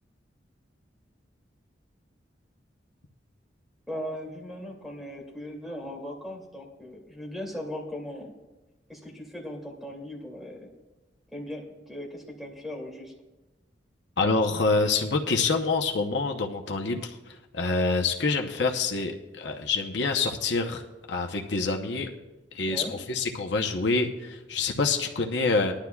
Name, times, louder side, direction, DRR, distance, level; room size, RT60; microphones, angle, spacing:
voice 1, 3.9-8.3 8.9-10.7 11.3-13.1 22.6-22.9, left 1 dB, ahead, -2 dB, 2.5 m, -38 dB
voice 2, 14.2-17.2 17.5-20.8 21.1-22.1 22.5-25.7, left 3 dB, 70° left, 3 dB, 0.9 m, -26 dB
20.0 x 11.5 x 2.3 m, 1.1 s
head